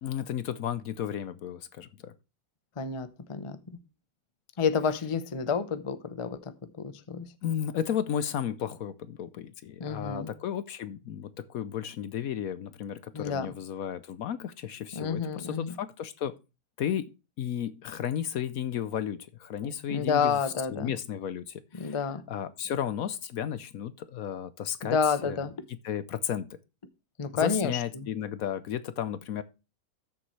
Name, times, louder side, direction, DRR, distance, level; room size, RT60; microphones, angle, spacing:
voice 1, 0.0-2.1 7.4-16.4 16.8-20.4 20.7-22.0 22.3-25.0 25.2-25.5 25.8-26.5 27.3-29.4, left 9 dB, 65° left, 1.0 m, -33 dB
voice 2, 2.8-3.6 4.6-6.4 6.8-7.3 9.8-10.3 13.1-13.5 14.9-15.8 19.6-20.9 21.7-22.2 24.8-25.5 27.2-28.1, left 6 dB, 30° left, 0.6 m, -29 dB
13.0 x 7.1 x 3.2 m
omnidirectional pair, 1.8 m